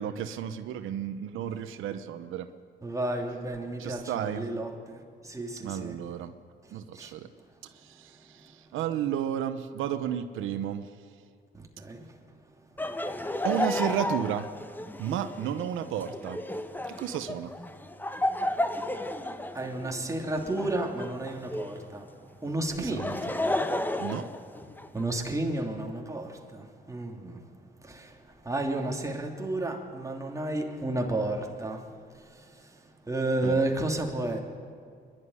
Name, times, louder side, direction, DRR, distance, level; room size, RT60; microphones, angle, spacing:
voice 1, 0.0-2.5 3.8-4.5 5.6-6.3 6.7-7.3 7.6-10.9 13.4-14.5 15.0-16.4 16.9-17.5 22.8-23.0 24.0-24.3 33.4-33.6, right 9 dB, 85° right, 10 dB, 0.9 m, -32 dB
voice 2, 2.8-6.0 6.6-7.1 8.3-8.4 11.5-12.2 19.5-23.3 24.9-27.5 27.8-34.4, right 2 dB, 15° right, 1 dB, 3.0 m, -32 dB
Laughter, 12.8-21.8 22.7-25.1, left 1 dB, 10° left, 1.2 m, -33 dB
26.0 x 11.5 x 9.8 m, 2.2 s
cardioid pair, 90°, 20 cm